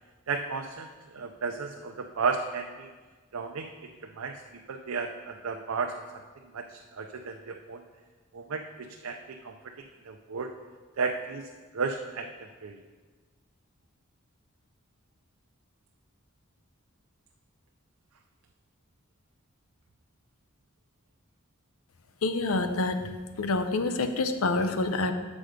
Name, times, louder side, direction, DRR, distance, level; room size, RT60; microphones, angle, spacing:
voice 1, 0.3-0.9 1.1-2.9 3.3-3.7 4.2-4.3 4.7-6.2 6.5-7.8 8.3-9.2 9.4-9.6 10.0-10.5 11.0-11.4 11.7-12.8, right 4 dB, 85° right, 3 dB, 0.5 m, -33 dB
voice 2, 22.2-23.0 23.4-25.1, left 3 dB, 85° left, 8 dB, 0.7 m, -27 dB
7.7 x 6.2 x 5.0 m, 1.4 s
head